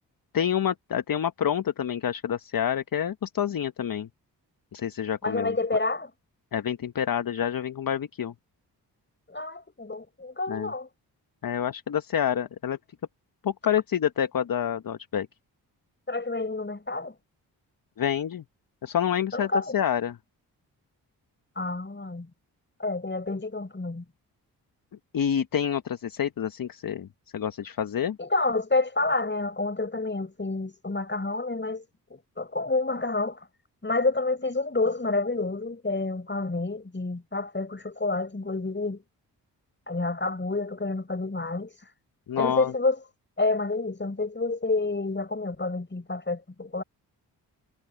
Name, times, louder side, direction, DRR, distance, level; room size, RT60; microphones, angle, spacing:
voice 1, 0.3-4.1 4.7-5.5 6.5-8.3 10.5-10.7 11.4-12.8 13.4-15.3 18.0-18.4 18.8-20.2 25.1-27.1 27.3-28.2 42.3-42.7, left 9 dB, 50° left, 1.2 m, -28 dB
voice 2, 5.2-6.1 9.3-10.9 16.1-17.1 19.3-19.7 21.5-22.3 22.8-24.0 28.2-31.8 32.1-33.5 33.8-39.0 39.9-41.7 42.3-43.0 43.4-46.8, left 3 dB, 25° left, 6.7 m, -29 dB
supercardioid pair, 45°, 43 cm